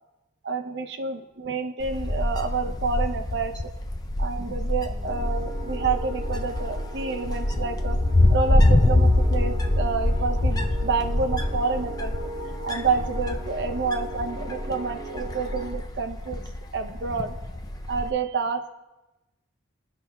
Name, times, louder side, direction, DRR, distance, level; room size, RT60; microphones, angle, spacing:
voice 1, 0.4-3.6 4.2-8.0 8.3-12.1 12.6-16.4 16.7-17.4 17.9-18.7, right 4 dB, 65° right, 7 dB, 0.6 m, -29 dB
Wind, 1.8-18.1, left 1 dB, 20° left, 0.4 m, -25 dB
sound 1, 5.0-15.7, right 1 dB, ahead, 1.8 m, -39 dB
16.0 x 5.6 x 2.2 m, 1.0 s
head